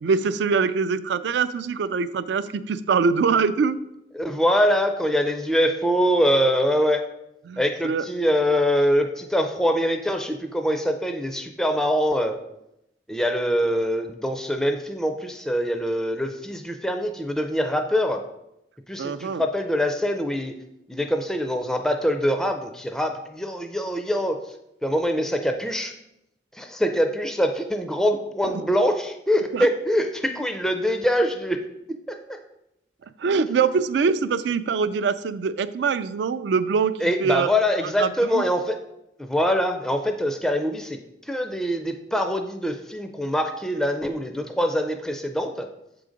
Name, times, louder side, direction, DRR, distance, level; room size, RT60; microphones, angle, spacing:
voice 1, 0.0-3.8 7.5-8.1 19.0-19.4 28.5-28.6 29.5-29.7 33.2-37.5 38.0-38.4, right 5 dB, 75° right, 13 dB, 0.3 m, -23 dB
voice 2, 4.1-7.0 7.6-12.4 13.1-18.2 18.9-20.5 20.9-24.4 24.8-25.9 26.5-31.6 32.1-32.4 33.4-33.5 37.0-38.8 39.2-41.0 41.3-45.7, equal, 5° left, 5 dB, 0.4 m, -24 dB
6.7 x 3.9 x 5.0 m, 0.84 s
head